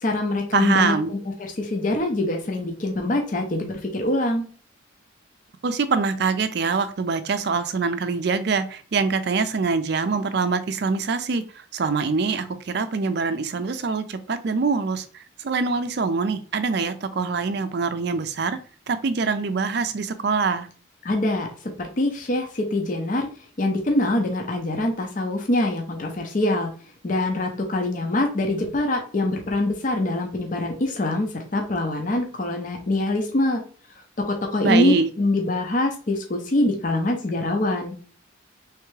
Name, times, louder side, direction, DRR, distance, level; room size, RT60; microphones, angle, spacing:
voice 1, 0.0-4.5 21.0-23.3 23.6-26.7 27.0-33.6 34.2-38.0, left 1 dB, 40° left, 0.6 m, -24 dB
voice 2, 0.5-1.1 5.6-18.6 18.9-20.7 34.6-35.1, right 4 dB, 55° right, 0.4 m, -24 dB
3.4 x 3.2 x 3.2 m
head